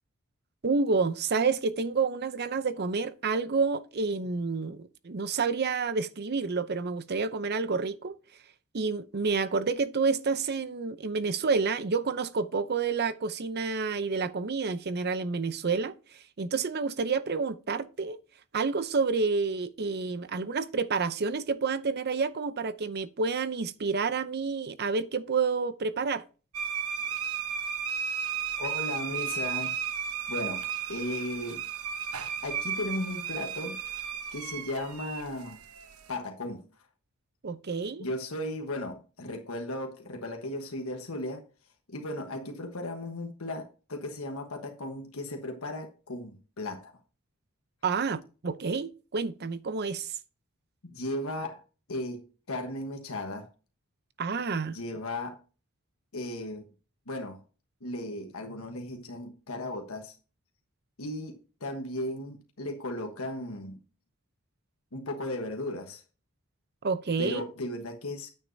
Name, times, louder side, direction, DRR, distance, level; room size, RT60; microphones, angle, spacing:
voice 1, 0.6-8.1 8.7-16.0 16.4-18.2 18.5-26.2 37.4-38.1 47.8-50.2 54.2-54.8 66.8-67.4, right 4 dB, 50° right, 0.6 m, -29 dB
sound 1, 26.5-36.2, right 8 dB, 85° right, 1.0 m, -34 dB
voice 2, 28.6-29.7 30.3-31.6 32.4-33.8 34.3-35.6 36.1-36.6 38.0-41.4 41.9-46.9 50.8-51.6 51.9-53.5 54.7-55.4 56.1-56.6 57.1-57.4 57.8-60.1 61.0-63.8 64.9-66.0 67.2-68.3, left 1 dB, 75° left, 1.3 m, -36 dB
9.4 x 8.7 x 2.7 m
head